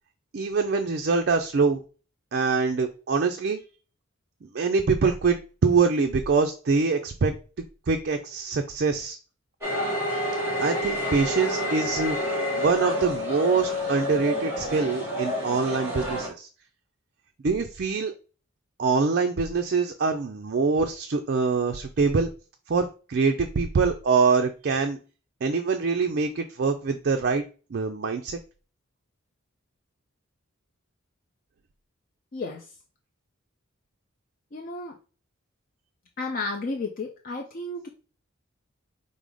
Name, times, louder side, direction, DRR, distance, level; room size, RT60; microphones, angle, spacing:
voice 1, 0.3-1.8 2.3-3.6 4.5-5.4 5.6-7.3 7.9-9.2 10.6-12.2 12.6-16.5 17.4-18.1 18.8-22.3 22.7-25.0 25.4-27.4 27.7-28.4, right 4 dB, 50° right, 5 dB, 0.4 m, -24 dB
sound 1, 9.6-16.3, left 1 dB, 10° right, 2.2 m, -28 dB
voice 2, 32.3-32.6 34.5-34.9 36.2-37.9, left 3 dB, 40° left, 2 dB, 0.5 m, -32 dB
5.3 x 2.0 x 4.8 m, 0.35 s
head